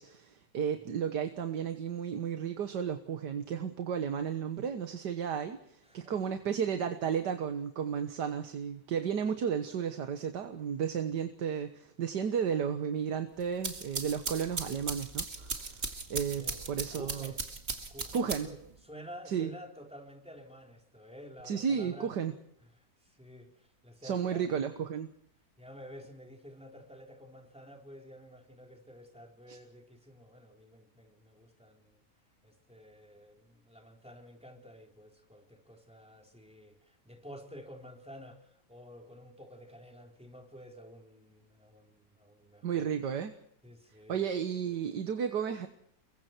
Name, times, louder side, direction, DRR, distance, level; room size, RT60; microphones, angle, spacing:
voice 1, 0.0-17.3 18.1-18.5 19.3-19.5 21.4-22.3 24.0-25.1 29.5-29.6 42.6-43.3 44.1-45.7, right 7 dB, 75° right, 7 dB, 1.9 m, -33 dB
voice 2, 5.8-6.2 16.2-16.6 16.9-17.5 17.9-22.1 22.7-24.4 25.6-32.0 32.4-42.9 43.6-44.2, equal, 5° right, 1 dB, 3.9 m, -51 dB
sound 1, 13.4-18.7, right 3 dB, 40° right, 2.3 m, -38 dB
30.0 x 22.5 x 4.5 m, 0.70 s
omnidirectional pair, 1.8 m